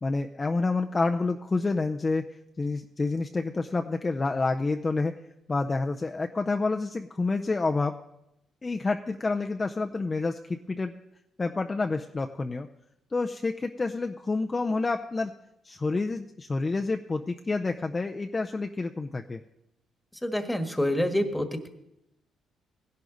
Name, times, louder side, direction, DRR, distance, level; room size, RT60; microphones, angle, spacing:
voice 1, 0.0-2.3 2.6-5.1 5.5-7.9 8.6-10.9 11.4-12.7 13.1-15.3 15.6-19.4, left 3 dB, 25° left, 4 dB, 0.5 m, -28 dB
voice 2, 20.2-21.5, left 1 dB, 5° left, 7 dB, 1.4 m, -26 dB
16.5 x 11.0 x 3.9 m, 0.85 s
cardioid pair, 90°, 0 cm